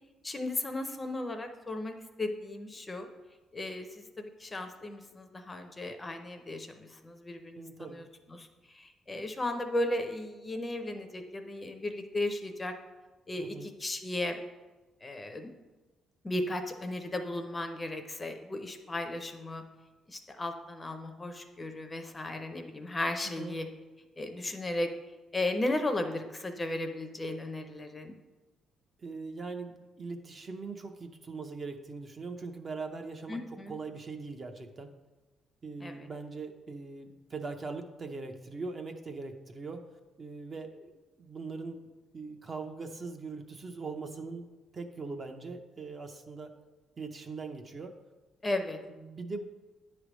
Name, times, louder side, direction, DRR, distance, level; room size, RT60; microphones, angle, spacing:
voice 1, 0.2-3.1 3.5-12.7 13.3-14.4 15.0-15.5 16.2-19.6 20.1-23.7 24.2-24.9 25.3-28.1 33.3-33.7 35.8-36.1 48.4-48.8, left 1 dB, 15° left, 6 dB, 0.6 m, -35 dB
voice 2, 7.6-8.0 13.4-13.7 23.2-23.6 29.0-34.9 35.6-39.9 40.2-40.9 41.2-41.8 42.1-44.5 44.7-46.5 47.0-47.9 48.9-49.5, right 4 dB, 30° right, 5 dB, 0.5 m, -41 dB
9.9 x 3.3 x 6.0 m, 1.2 s
cardioid pair, 160°, 0 cm